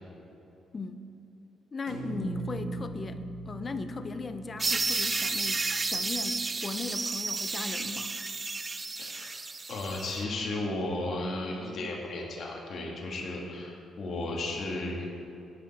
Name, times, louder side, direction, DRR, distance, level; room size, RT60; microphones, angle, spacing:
voice 1, 0.7-1.1 1.7-8.1, left 3 dB, 35° left, 10 dB, 0.7 m, -38 dB
sound 1, 1.9-6.1, right 2 dB, 85° right, 1.9 m, -40 dB
sound 2, 4.6-10.2, right 3 dB, 25° right, 0.5 m, -32 dB
voice 2, 9.0-9.4 9.7-15.0, left 2 dB, 60° left, -1 dB, 1.8 m, -34 dB
18.0 x 6.1 x 4.3 m, 2.9 s
cardioid pair, 90°, 0 cm